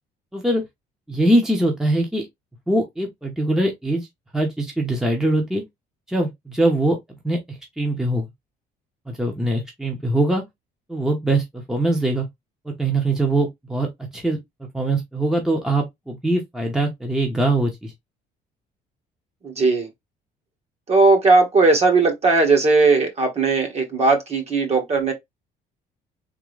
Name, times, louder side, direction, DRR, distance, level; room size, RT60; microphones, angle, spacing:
voice 1, 0.3-0.6 1.1-2.3 2.7-4.1 4.3-5.6 6.1-7.0 7.2-8.2 9.1-10.4 10.9-12.3 12.6-13.9 14.1-17.9, right 1 dB, 5° right, 1.0 m, -22 dB
voice 2, 19.4-19.9 20.9-25.1, right 3 dB, 40° right, 1.6 m, -17 dB
3.7 x 3.0 x 3.2 m
cardioid pair, 110°, 17 cm